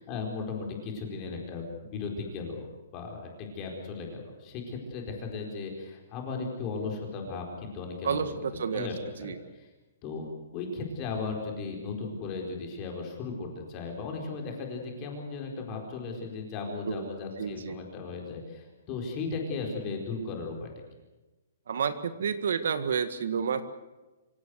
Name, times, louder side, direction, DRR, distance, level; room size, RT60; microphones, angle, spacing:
voice 1, 0.1-2.7 2.9-8.2 8.7-9.7 10.0-10.3 10.5-20.7, left 4 dB, 20° left, 1 dB, 4.5 m, -36 dB
voice 2, 8.0-8.9 9.2-9.4 16.7-17.1 17.4-17.8 21.7-23.6, right 7 dB, 65° right, 11 dB, 1.7 m, -30 dB
25.5 x 17.0 x 8.0 m, 1.1 s
hypercardioid pair, 175°, 0 cm